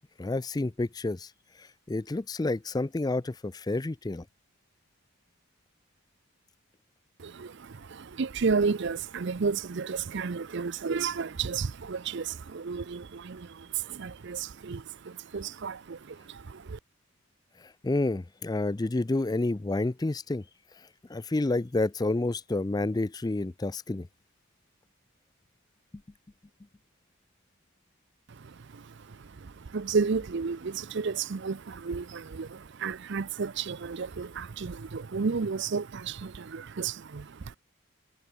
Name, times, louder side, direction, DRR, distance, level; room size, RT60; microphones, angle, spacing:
voice 1, 0.2-1.3 1.6-4.2 17.6-20.4 21.1-24.1, left 2 dB, 20° left, 0.4 m, -29 dB
voice 2, 7.2-16.8 28.3-37.6, right 5 dB, 55° right, 0.5 m, -32 dB
head